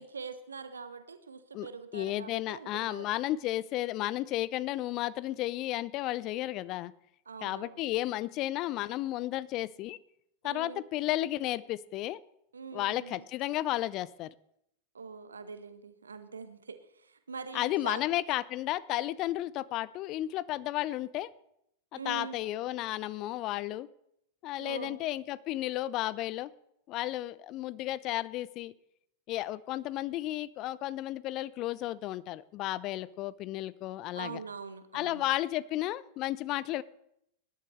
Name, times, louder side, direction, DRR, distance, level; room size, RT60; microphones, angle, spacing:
voice 1, 0.0-3.0 7.3-7.8 10.4-10.8 12.5-13.2 14.9-18.1 21.9-22.4 24.6-25.0 32.9-33.0 34.1-35.2, right 5 dB, 75° right, 11 dB, 1.1 m, -43 dB
voice 2, 1.9-6.9 7.4-10.0 10.4-12.2 12.7-14.3 17.5-21.3 21.9-23.9 24.4-26.5 26.9-28.7 29.3-34.4 34.9-36.8, left 15 dB, 40° left, 20 dB, 0.5 m, -33 dB
19.5 x 11.5 x 3.2 m, 0.76 s
figure-of-eight pair, 90°, 0 cm